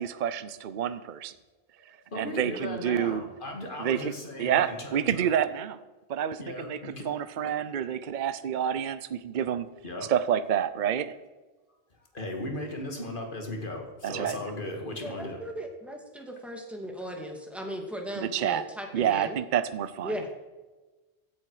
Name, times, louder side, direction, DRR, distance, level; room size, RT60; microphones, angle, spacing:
voice 1, 0.0-1.3 2.2-3.2 3.8-4.1 4.4-5.8 6.1-6.8 7.0-9.7 10.1-11.1 14.0-14.4 18.3-18.6 18.9-20.1, right 9 dB, 55° right, 13 dB, 0.8 m, -28 dB
voice 2, 2.1-5.3 6.4-7.4 9.8-10.1 12.1-15.4, left 1 dB, 50° left, 3 dB, 2.5 m, -37 dB
voice 3, 15.0-19.4 20.0-20.3, equal, ahead, 1 dB, 2.2 m, -37 dB
16.0 x 10.5 x 4.9 m, 1.2 s
omnidirectional pair, 1.1 m